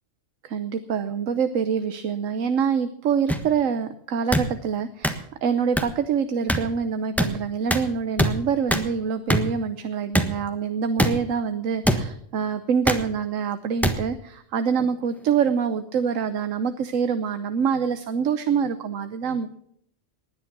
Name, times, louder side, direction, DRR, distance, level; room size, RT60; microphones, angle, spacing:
voice 1, 0.4-19.6, right 6 dB, 80° right, 10 dB, 1.2 m, -25 dB
sound 1, 3.3-3.4 4.3-4.5 5.0-5.1 5.8-5.9 6.5-6.6 7.2-7.3 7.7-7.8 8.2-8.3 8.7-8.8 9.3-9.4 10.1-10.3 11.0-11.1 11.8-12.0 12.9-13.0 13.8-13.9 14.8-14.9, equal, ahead, 1.2 m, -21 dB
19.5 x 9.9 x 6.0 m, 0.69 s
omnidirectional pair, 1.3 m